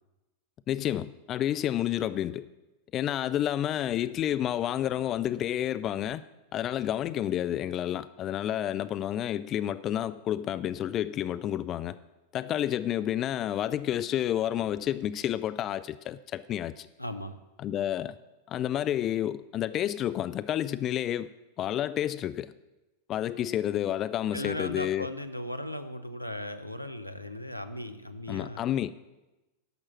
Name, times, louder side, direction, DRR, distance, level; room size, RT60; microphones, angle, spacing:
voice 1, 0.7-2.5 2.9-6.2 6.5-12.0 12.3-16.9 17.6-18.1 18.5-21.3 21.6-22.5 23.1-25.1 28.3-28.9, left 11 dB, 30° left, 0.3 m, -30 dB
voice 2, 17.0-17.4 24.3-28.6, left 1 dB, 90° left, 0.6 m, -37 dB
11.0 x 6.1 x 7.4 m
figure-of-eight pair, 90°, 0 cm